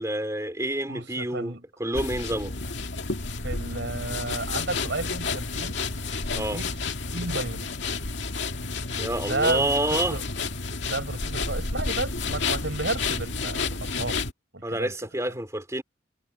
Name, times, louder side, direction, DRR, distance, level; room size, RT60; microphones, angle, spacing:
voice 1, 0.0-1.5 1.8-2.5 6.3-6.6 8.9-10.2 14.6-15.8, right 1 dB, 15° right, 3.0 m, -28 dB
voice 2, 0.9-1.6 3.3-5.8 6.3-6.8 7.1-7.7 9.3-10.2 10.8-14.2 14.5-14.9, right 2 dB, 70° right, 4.4 m, -32 dB
sound 1, 1.9-14.3, left 4 dB, 70° left, 2.2 m, -31 dB
head